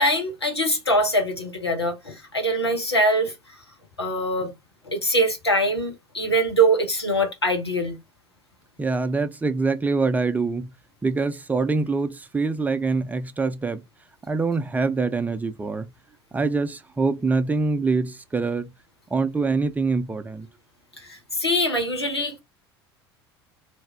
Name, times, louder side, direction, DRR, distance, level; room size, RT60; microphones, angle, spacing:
voice 1, 0.0-3.6 4.0-4.5 4.8-8.0 21.0-22.4, right 1 dB, 85° left, 1.0 m, -23 dB
voice 2, 8.8-10.7 11.0-13.8 14.3-15.9 16.3-18.7 19.1-20.5, right 4 dB, 10° right, 0.5 m, -24 dB
3.3 x 2.7 x 3.3 m
figure-of-eight pair, 70°, 13 cm